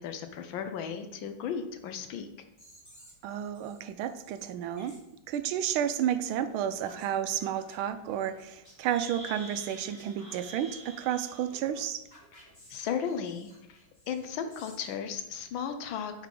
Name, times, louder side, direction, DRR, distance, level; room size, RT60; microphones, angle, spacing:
voice 1, 0.0-2.3 12.7-13.8 14.1-16.3, left 7 dB, 75° left, 8 dB, 1.4 m, -35 dB
sound 1, 2.6-5.9 6.2-6.4 6.9-7.1 7.4-7.7 8.1-14.9, equal, 15° left, 2.5 m, -57 dB
voice 2, 3.2-5.0 5.3-12.0, right 10 dB, 80° right, 10 dB, 1.4 m, -31 dB
sound 2, 6.3-6.4 6.9-7.1 8.5-8.6 8.8-11.5, equal, 15° right, 1.8 m, -47 dB
9.1 x 4.9 x 3.7 m, 0.90 s
omnidirectional pair, 2.3 m